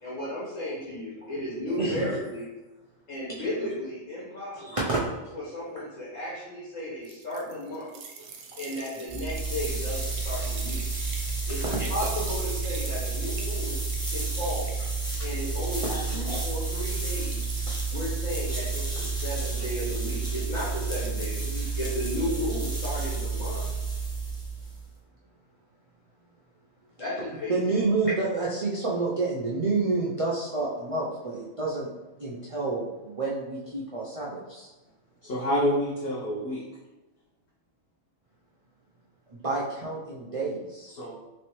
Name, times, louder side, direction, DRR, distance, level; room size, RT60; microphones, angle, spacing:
voice 1, 0.0-2.5 3.1-4.8 5.3-7.9 8.6-10.8 11.5-13.8 14.1-14.7 15.2-17.4 17.9-23.7 27.0-27.5, left 1 dB, 85° left, -8 dB, 1.6 m, -34 dB
voice 2, 4.5-5.0 5.8-5.9 11.6-12.1 15.0-15.2 15.8-16.4 17.7-17.8 27.5-31.9 32.2-34.7 39.3-41.0, right 3 dB, 65° right, -5 dB, 0.3 m, -29 dB
sound 1, 7.0-15.7 16.0-16.7 17.0-18.1 18.6-19.8 20.9-21.4 21.7-21.8, right 5 dB, 90° right, 1.0 m, -45 dB
sound 2, 9.1-24.9, right 4 dB, 5° left, 0.5 m, -30 dB
voice 3, 35.2-36.6 40.9-41.2, equal, 55° left, -8 dB, 0.9 m, -27 dB
3.3 x 3.2 x 3.0 m, 1.1 s
omnidirectional pair, 1.3 m